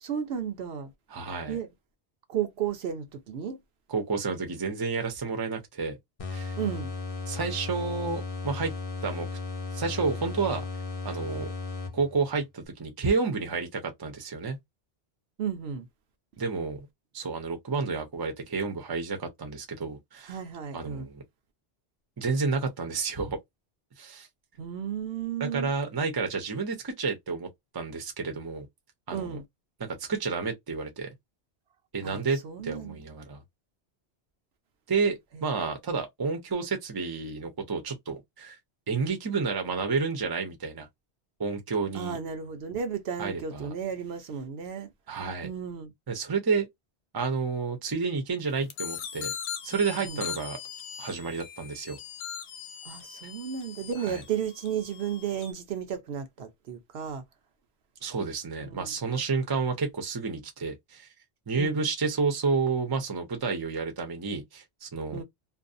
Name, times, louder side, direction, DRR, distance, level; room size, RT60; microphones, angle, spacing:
voice 1, 0.0-0.9 1.5-1.7 2.3-3.6 6.6-6.9 15.4-15.9 20.3-21.1 24.6-25.7 29.1-29.4 32.0-33.0 35.3-35.5 41.9-44.9 45.4-45.9 50.0-50.2 52.8-57.2 58.6-59.0 61.6-61.8 65.1-65.2, right 8 dB, 70° right, 0.9 m, -33 dB
voice 2, 1.1-1.6 3.9-6.0 6.3-6.5 7.3-8.7 9.0-9.3 9.7-10.6 11.0-11.5 11.9-14.6 16.4-16.9 17.1-20.4 20.7-21.2 22.2-23.4 24.0-24.3 25.4-27.5 27.7-28.7 29.1-29.4 30.0-31.1 31.9-33.4 34.9-38.6 38.9-40.9 41.4-42.2 43.2-43.7 45.1-45.5 46.1-46.7 47.1-49.3 49.6-50.6 51.0-52.0 54.0-54.2 58.0-61.1 61.5-65.2, right 4 dB, 25° right, 0.6 m, -30 dB
sound 1, 6.2-12.3, left 4 dB, 40° left, 0.5 m, -35 dB
sound 2, 48.7-55.5, left 9 dB, 75° left, 0.8 m, -40 dB
2.5 x 2.1 x 2.5 m
omnidirectional pair, 1.1 m